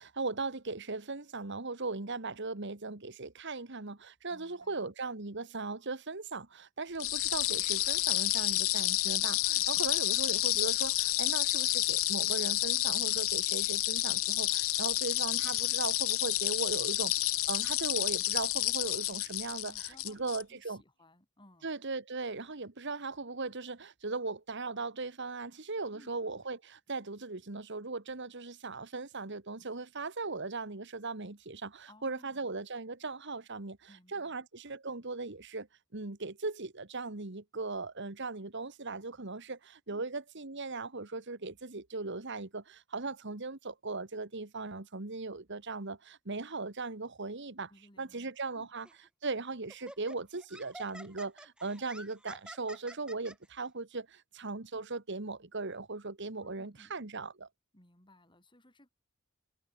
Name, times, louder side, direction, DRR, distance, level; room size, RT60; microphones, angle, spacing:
voice 1, 0.0-20.8 21.6-33.8 34.1-35.7 35.9-47.7 48.0-48.9 49.2-57.5, right 3 dB, 60° right, 1.8 m, -38 dB
voice 2, 4.3-4.9 9.5-9.7 19.6-21.8 25.9-26.2 31.9-32.5 33.9-34.3 39.9-40.0 47.7-48.7 56.4-56.9 57.7-58.9, left 1 dB, 25° left, 7.5 m, -60 dB
vibrating wind up toy, 7.0-20.4, left 17 dB, 80° left, 0.8 m, -30 dB
Laughter, 48.9-49.1 49.7-53.4, right 1 dB, 5° right, 1.0 m, -49 dB
head